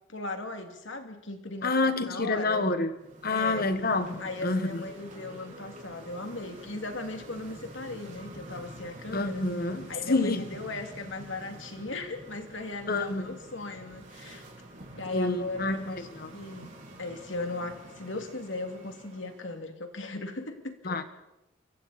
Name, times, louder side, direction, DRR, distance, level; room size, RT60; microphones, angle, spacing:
voice 1, 0.1-2.7 3.3-3.7 4.2-9.5 9.9-14.5 14.9-16.7 17.0-21.0, left 2 dB, 70° left, 2.6 m, -37 dB
voice 2, 1.6-2.9 3.2-4.8 9.1-10.5 12.9-13.3 15.1-16.3 20.8-21.0, left 3 dB, 50° left, 1.5 m, -28 dB
sound 1, 2.9-19.6, right 1 dB, 40° right, 4.9 m, -47 dB
28.5 x 24.5 x 4.3 m
head